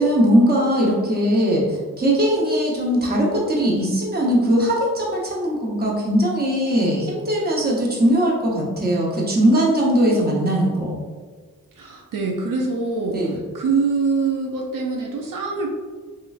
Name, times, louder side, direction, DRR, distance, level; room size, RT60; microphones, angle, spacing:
voice 1, 0.0-11.0 13.1-13.4, equal, 30° right, -3 dB, 0.8 m, -20 dB
voice 2, 11.8-15.7, right 4 dB, 75° right, 0 dB, 0.5 m, -24 dB
3.7 x 3.1 x 2.3 m, 1.4 s
wide cardioid pair, 140°, 33 cm